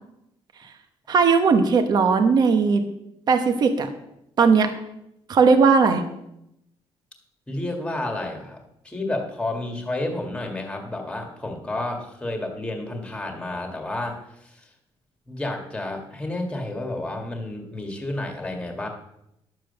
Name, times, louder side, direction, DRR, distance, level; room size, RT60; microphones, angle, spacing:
voice 1, 1.1-2.8 3.3-3.9 4.4-4.7 5.3-6.0, right 5 dB, 40° right, 7 dB, 1.1 m, -18 dB
voice 2, 7.5-8.6 8.8-14.7 15.3-18.9, left 2 dB, 10° left, 3 dB, 1.8 m, -30 dB
12.0 x 7.6 x 6.7 m, 0.82 s
cardioid pair, 175°, 10 cm